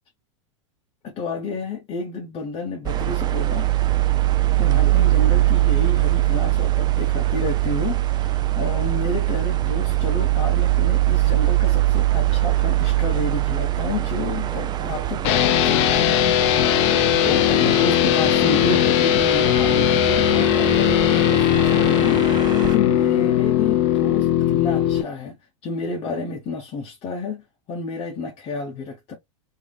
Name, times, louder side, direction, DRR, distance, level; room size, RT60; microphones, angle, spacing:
voice 1, 1.0-3.7 4.6-16.3 16.7-25.4 25.6-29.1, left 4 dB, 35° left, 0.8 m, -30 dB
sound 1, 2.9-22.8, right 15 dB, 25° right, 0.4 m, -22 dB
sound 2, 15.2-25.0, left 12 dB, 60° left, 0.5 m, -19 dB
3.1 x 2.7 x 2.3 m
hypercardioid pair, 110°, 17 cm